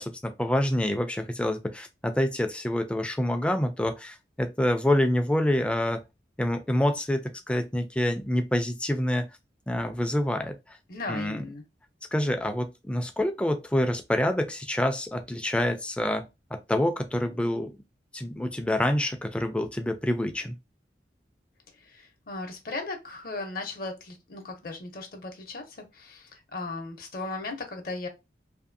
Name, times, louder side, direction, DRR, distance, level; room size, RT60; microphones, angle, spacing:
voice 1, 0.0-6.0 6.4-9.3 9.7-10.6 11.1-11.4 12.1-17.7 18.1-20.5, left 1 dB, 5° left, 0.3 m, -27 dB
voice 2, 10.9-11.6 21.8-28.1, left 3 dB, 55° left, 0.6 m, -37 dB
2.6 x 2.6 x 2.5 m
head